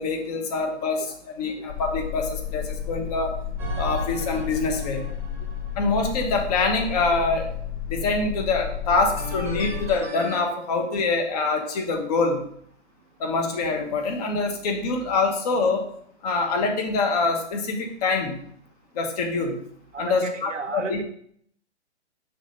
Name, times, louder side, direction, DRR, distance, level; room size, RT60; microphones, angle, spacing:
voice 1, 0.0-3.4 3.7-5.1 5.8-7.5 7.9-12.4 13.2-15.8 16.2-18.4 18.9-19.6 20.0-21.0, left 3 dB, 35° left, 3 dB, 1.1 m, -25 dB
sound 1, 1.7-9.9, left 9 dB, 55° left, 1.7 m, -32 dB
sound 2, 3.6-6.6 9.2-10.4, right 1 dB, 5° right, 1.0 m, -36 dB
voice 2, 19.9-21.0, right 5 dB, 90° right, 5 dB, 0.8 m, -33 dB
5.8 x 3.3 x 5.4 m, 0.65 s
hypercardioid pair, 140°, 36 cm